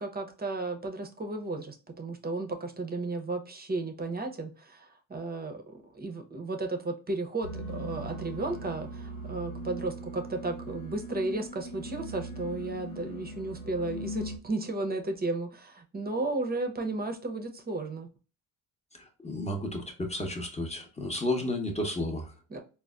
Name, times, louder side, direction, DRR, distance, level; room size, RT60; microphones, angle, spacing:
voice 1, 0.0-18.1 22.5-22.6, right 2 dB, 20° right, 0.7 m, -34 dB
sound 1, 7.4-14.4, right 1 dB, 80° left, 0.9 m, -40 dB
voice 2, 18.9-22.3, left 1 dB, 15° left, 0.9 m, -32 dB
3.9 x 2.1 x 2.3 m
supercardioid pair, 60°, 44 cm